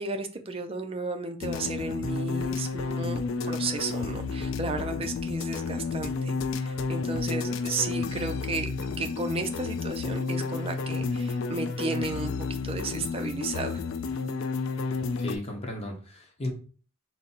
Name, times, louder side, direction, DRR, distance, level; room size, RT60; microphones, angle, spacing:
voice 1, 0.0-8.7 9.0-13.8, right 3 dB, 30° right, 6 dB, 0.5 m, -34 dB
sound 1, 1.4-15.4, left 4 dB, 70° left, 0.4 m, -31 dB
voice 2, 15.2-16.5, left 1 dB, 30° left, 2 dB, 0.9 m, -35 dB
4.0 x 2.1 x 4.2 m, 0.39 s
head